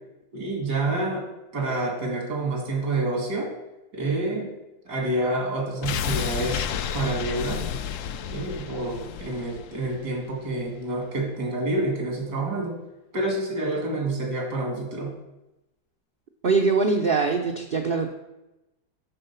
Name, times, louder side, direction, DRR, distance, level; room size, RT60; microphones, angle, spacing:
voice 1, 0.3-1.3 1.5-3.5 3.9-4.5 4.9-6.7 6.9-7.6 8.3-12.7 13.1-15.1, right 2 dB, 85° right, -1 dB, 2.7 m, -28 dB
sound 1, 5.8-10.8 11.1-11.2, left 8 dB, 70° left, 0.8 m, -31 dB
voice 2, 16.4-18.1, right 4 dB, 55° right, 3 dB, 0.6 m, -22 dB
11.5 x 3.8 x 5.6 m, 0.95 s
omnidirectional pair, 1.7 m